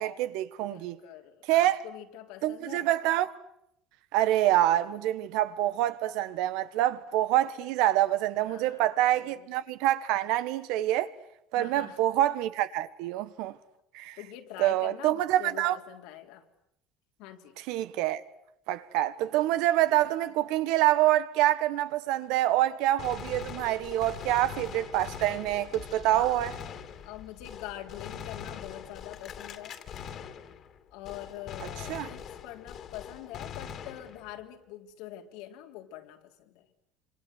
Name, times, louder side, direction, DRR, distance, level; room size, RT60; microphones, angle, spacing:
voice 1, 0.0-1.0 1.5-1.8 2.4-3.3 4.1-11.1 11.5-13.5 13.9-14.2 14.6-15.8 17.7-18.2 18.7-26.5 31.9-32.1, right 14 dB, 80° right, 1.5 m, -26 dB
voice 2, 0.6-2.9 8.4-8.8 9.1-9.5 11.5-12.0 14.2-16.4 17.2-17.6 26.1-26.4 27.0-29.8 30.9-36.7, left 13 dB, 90° left, 3.4 m, -44 dB
Gunshot gunfire, 23.0-30.8 31.0-34.4, left 8 dB, 45° left, 2.5 m, -42 dB
27.0 x 26.5 x 8.2 m
cardioid pair, 140°, 0 cm